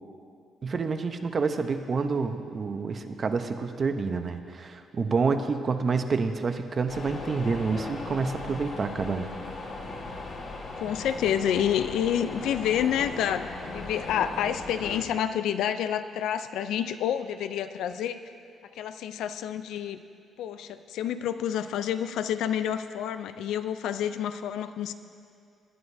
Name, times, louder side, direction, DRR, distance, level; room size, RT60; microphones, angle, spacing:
voice 1, 0.6-9.3, right 4 dB, 40° right, 8 dB, 0.7 m, -28 dB
sound 1, 6.9-15.0, left 3 dB, 60° left, 1.5 m, -38 dB
voice 2, 10.8-18.2 18.7-20.0 20.4-24.9, left 9 dB, 85° left, 11 dB, 0.4 m, -29 dB
19.0 x 9.5 x 2.7 m, 2.4 s
cardioid pair, 90°, 0 cm